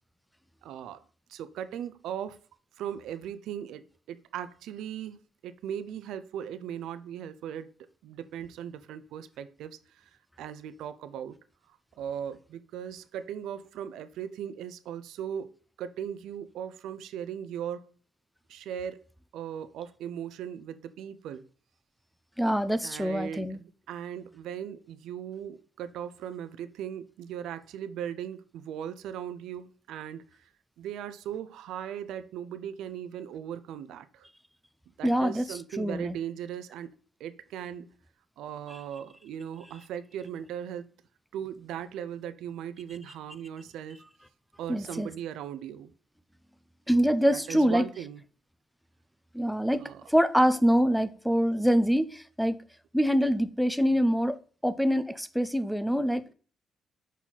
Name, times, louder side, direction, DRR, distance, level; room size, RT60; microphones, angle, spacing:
voice 1, 0.6-1.0 1.3-2.4 2.8-7.7 8.0-10.1 10.4-11.4 11.7-17.8 18.5-19.0 19.3-21.5 22.8-30.5 30.8-34.3 35.0-36.9 37.2-37.9 38.4-40.9 41.3-44.0 44.6-45.9 47.2-48.2 49.8-50.0, right 9 dB, 85° right, 13 dB, 0.5 m, -38 dB
voice 2, 22.4-23.6 35.0-35.4 35.8-36.2 44.7-45.1 46.9-47.9 49.3-52.6 52.9-56.3, equal, ahead, 12 dB, 0.5 m, -25 dB
6.1 x 4.1 x 3.9 m, 0.41 s
cardioid pair, 90°, 0 cm